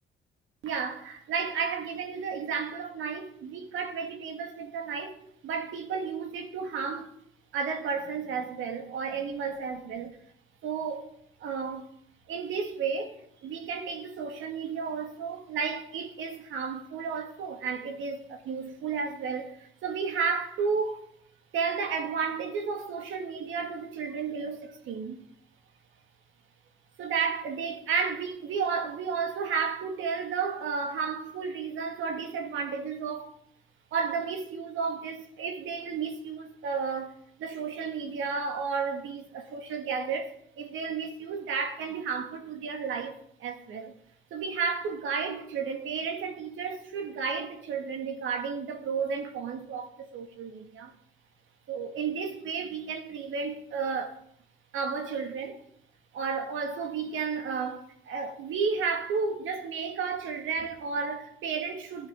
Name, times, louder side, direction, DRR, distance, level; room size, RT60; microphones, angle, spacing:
voice 1, 0.6-5.2 5.4-7.1 7.5-10.2 10.6-11.1 11.4-11.9 12.3-13.1 13.4-21.1 21.5-25.3 27.0-33.4 33.9-43.9 44.3-50.9 51.7-54.2 54.7-55.6 56.1-62.1, right 5 dB, 80° right, 2.2 m, -32 dB
19.0 x 11.0 x 3.8 m
cardioid pair, 90°, 20 cm